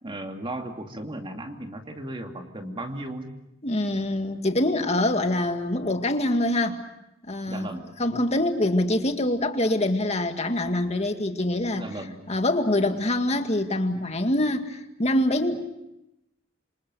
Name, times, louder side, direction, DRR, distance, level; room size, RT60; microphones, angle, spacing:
voice 1, 0.0-3.3 7.5-7.9 11.7-12.2, right 1 dB, 25° right, 4 dB, 2.6 m, -35 dB
voice 2, 3.6-6.8 7.3-7.7 8.0-11.9 12.3-15.6, left 1 dB, 35° left, 6 dB, 2.1 m, -25 dB
27.5 x 26.5 x 6.4 m, 0.87 s
head